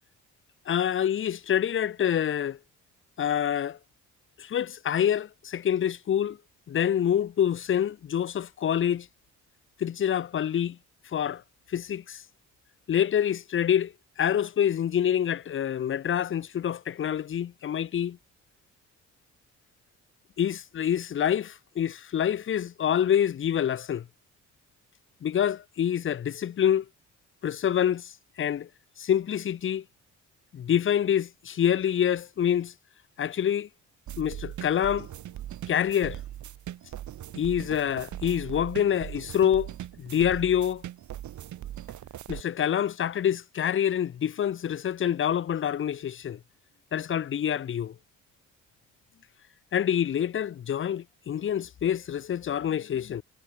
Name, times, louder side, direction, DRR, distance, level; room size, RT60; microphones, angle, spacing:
voice 1, 0.7-2.6 3.2-3.8 4.4-6.4 6.7-9.1 9.8-10.8 11.1-11.4 11.7-12.2 12.9-13.9 14.2-18.2 20.4-24.0 25.2-26.8 27.4-28.1 28.4-28.7 29.0-29.8 30.5-32.7 33.2-33.7 34.2-35.1 35.7-36.2 37.4-39.7 40.0-40.8 42.3-46.4 46.9-47.9 49.7-53.2, left 9 dB, 40° left, 0.7 m, -26 dB
sound 1, 34.1-42.4, right 12 dB, 70° right, 2.5 m, -40 dB
cardioid pair, 90°, 30 cm